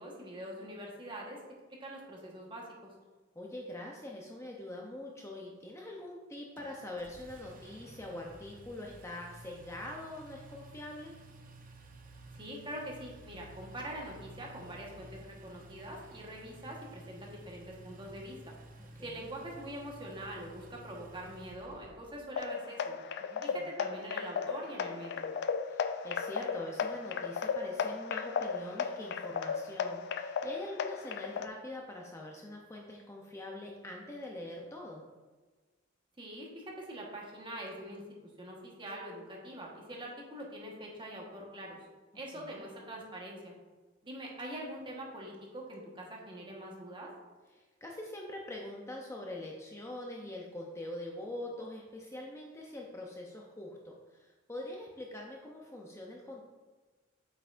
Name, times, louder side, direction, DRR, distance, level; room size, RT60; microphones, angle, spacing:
voice 1, 0.0-1.4 1.8-2.9 12.3-18.5 19.0-23.0 23.4-25.2 36.2-41.8 42.1-43.5 44.0-47.1, right 1 dB, 25° right, -2 dB, 1.3 m, -44 dB
voice 2, 3.3-11.1 19.1-19.3 23.2-23.6 25.7-35.0 42.3-42.7 47.6-56.4, left 1 dB, 15° left, -1 dB, 0.6 m, -44 dB
Engine, 6.6-22.3, right 2 dB, 45° right, 0.7 m, -53 dB
sound 1, 22.4-31.5, left 6 dB, 60° left, 0.4 m, -35 dB
8.0 x 5.6 x 2.5 m, 1.3 s
head